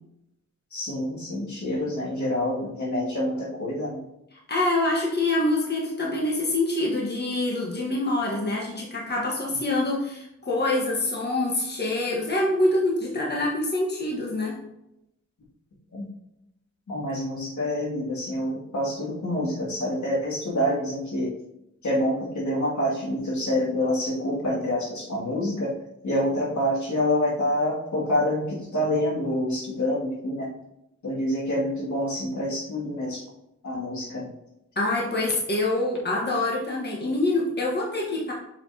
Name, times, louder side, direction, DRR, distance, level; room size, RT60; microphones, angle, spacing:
voice 1, 0.7-4.0 15.9-16.1 16.9-21.3 21.8-25.7 26.0-30.5 31.0-33.2 33.6-34.3, left 1 dB, 75° left, -5 dB, 2.4 m, -27 dB
voice 2, 4.3-14.6 34.7-38.3, left 2 dB, 35° left, -2 dB, 1.5 m, -25 dB
6.8 x 5.2 x 2.9 m, 0.84 s
cardioid pair, 75°, 29 cm